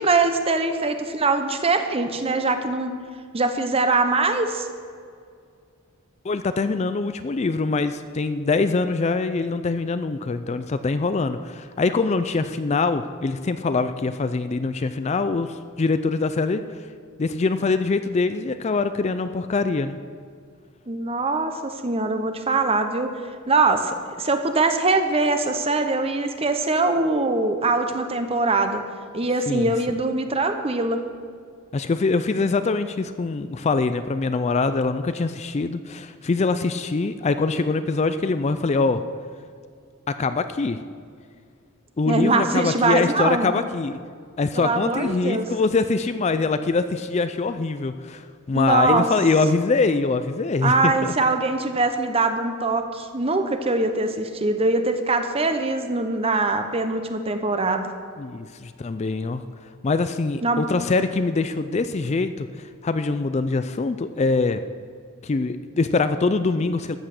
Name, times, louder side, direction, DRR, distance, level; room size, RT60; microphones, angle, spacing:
voice 1, 0.0-2.9 3.3-4.7 20.9-23.1 23.5-28.8 29.1-31.0 42.0-43.6 44.5-45.5 48.5-49.1 50.6-57.9 60.4-60.7, right 3 dB, 25° right, 7 dB, 0.9 m, -22 dB
voice 2, 6.2-16.9 17.2-20.0 29.5-29.7 31.7-39.0 40.1-40.8 42.0-44.0 44.4-51.1 58.2-59.4 59.8-64.6 65.2-67.0, left 3 dB, 30° left, 11 dB, 0.4 m, -23 dB
13.5 x 8.1 x 6.5 m, 2.1 s
head